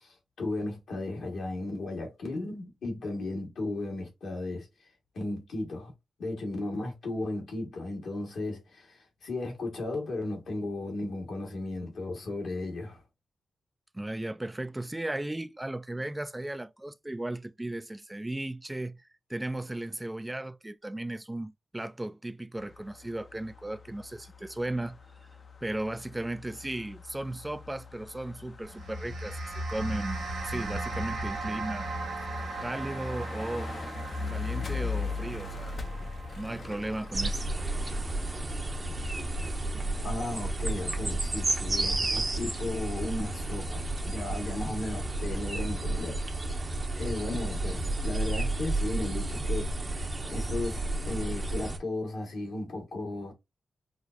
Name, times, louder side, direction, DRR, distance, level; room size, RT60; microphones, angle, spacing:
voice 1, 0.0-4.7 5.1-5.9 6.2-13.0 40.0-46.6 47.0-53.3, left 2 dB, 80° left, 1.4 m, -35 dB
voice 2, 13.9-19.0 19.3-25.0 25.6-31.9 32.6-33.7 34.3-36.1 36.4-37.4, right 1 dB, 20° right, 0.3 m, -36 dB
sound 1, 22.6-40.5, left 3 dB, 55° left, 0.6 m, -41 dB
sound 2, 28.6-39.2, right 2 dB, 85° right, 1.2 m, -38 dB
sound 3, 37.1-51.8, right 2 dB, 40° right, 0.8 m, -31 dB
4.8 x 2.0 x 2.4 m
supercardioid pair, 45°, 0 cm